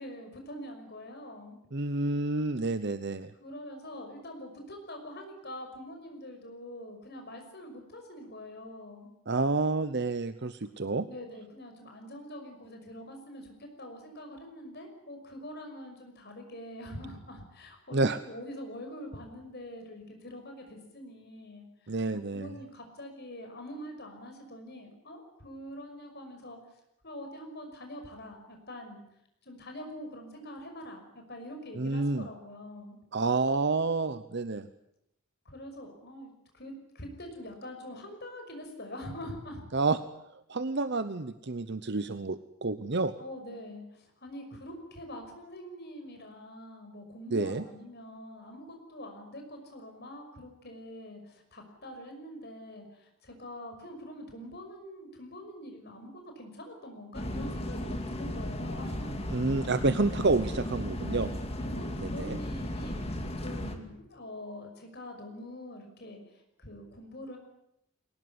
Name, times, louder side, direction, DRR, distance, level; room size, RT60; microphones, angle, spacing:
voice 1, 0.0-1.6 3.4-9.1 11.1-26.6 27.0-29.0 29.4-33.0 35.4-39.7 43.2-59.2 61.0-66.2 66.6-67.4, left 1 dB, 45° left, 4 dB, 5.9 m, -44 dB
voice 2, 1.7-3.3 9.3-11.1 17.9-18.2 21.9-22.5 31.8-32.3 33.1-34.7 39.7-40.0 40.5-43.1 47.3-47.6 59.3-61.3 62.0-62.4, right 3 dB, 50° right, 12 dB, 0.8 m, -29 dB
sound 1, 57.1-63.8, left 1 dB, 25° left, 2.5 m, -35 dB
22.0 x 19.5 x 9.8 m, 0.80 s
head